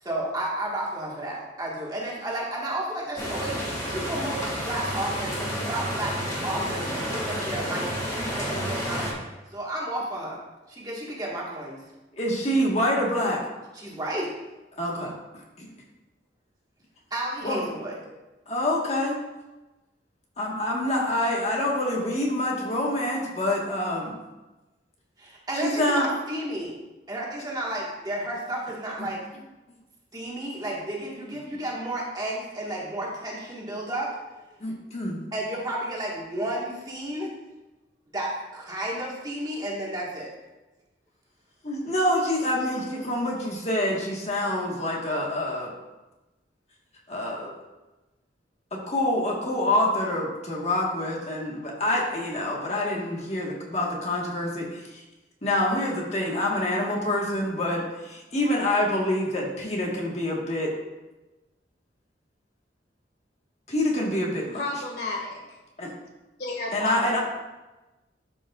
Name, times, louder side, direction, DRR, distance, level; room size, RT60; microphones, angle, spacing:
voice 1, 0.0-9.2 9.5-10.4 10.7-11.8 13.7-14.3 17.1-17.9 25.2-26.7 27.1-29.3 30.1-34.1 35.3-37.3 38.1-40.3, right 1 dB, 20° right, -4 dB, 1.6 m, -32 dB
sound 1, 3.2-9.1, equal, 20° left, 1.8 m, -30 dB
voice 2, 12.1-13.4 14.8-15.1 15.6-15.7 17.4-17.6 18.5-19.2 20.4-24.1 25.5-26.1 34.6-35.2 41.6-45.7 47.1-47.5 48.7-55.0 55.4-60.7 63.7-64.6 65.8-65.9 66.7-67.2, left 1 dB, 40° left, -2 dB, 1.5 m, -26 dB
voice 3, 64.5-65.6 66.4-67.2, left 2 dB, 65° left, -1 dB, 1.9 m, -32 dB
12.5 x 6.1 x 2.4 m, 1.1 s
head